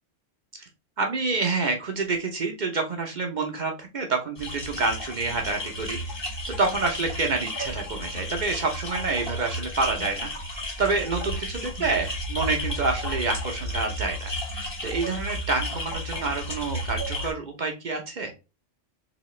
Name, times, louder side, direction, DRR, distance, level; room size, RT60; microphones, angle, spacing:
voice 1, 1.0-6.0 6.5-10.3 10.8-18.3, right 3 dB, 45° right, 3 dB, 0.6 m, -28 dB
sound 1, 4.4-17.3, equal, 20° left, 0.9 m, -32 dB
3.9 x 2.8 x 3.0 m, 0.29 s
omnidirectional pair, 1.3 m